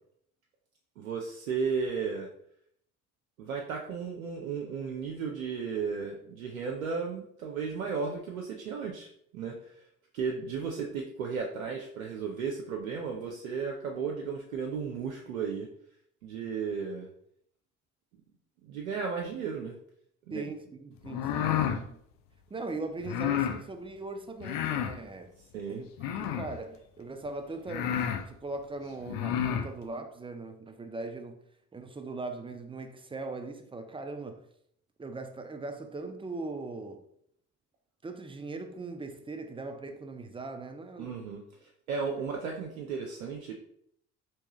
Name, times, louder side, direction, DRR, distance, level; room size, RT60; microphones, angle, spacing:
voice 1, 1.0-2.3 3.4-9.1 9.3-9.9 10.1-15.7 16.2-17.1 18.6-19.7 20.3-20.5 25.5-25.8 41.0-43.5, right 5 dB, 80° right, 0.6 m, -34 dB
voice 2, 20.3-22.0 22.5-25.3 25.7-31.4 31.7-34.4 35.0-37.0 38.0-41.2, right 3 dB, 15° right, 0.5 m, -40 dB
sound 1, 21.0-21.8 23.0-23.6 24.4-25.0 26.0-26.6 27.3-27.4 27.7-28.2 29.0-29.7, left 9 dB, 55° left, 0.6 m, -30 dB
4.5 x 3.0 x 2.9 m
figure-of-eight pair, 55°, 41 cm